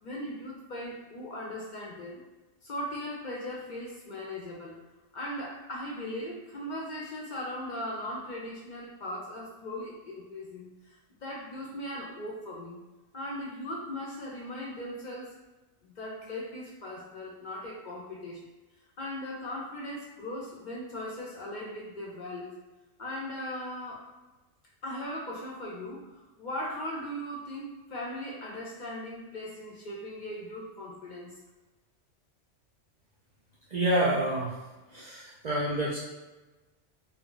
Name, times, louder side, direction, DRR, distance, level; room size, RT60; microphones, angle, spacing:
voice 1, 0.0-2.2 2.6-4.8 5.1-12.8 13.1-15.4 15.8-18.4 19.0-22.6 23.0-24.1 24.8-31.4, left 1 dB, 60° left, -3 dB, 0.5 m, -38 dB
voice 2, 33.7-34.5 34.9-36.0, right 1 dB, 65° right, -6 dB, 0.4 m, -28 dB
2.2 x 2.0 x 3.7 m, 1.2 s
omnidirectional pair, 1.2 m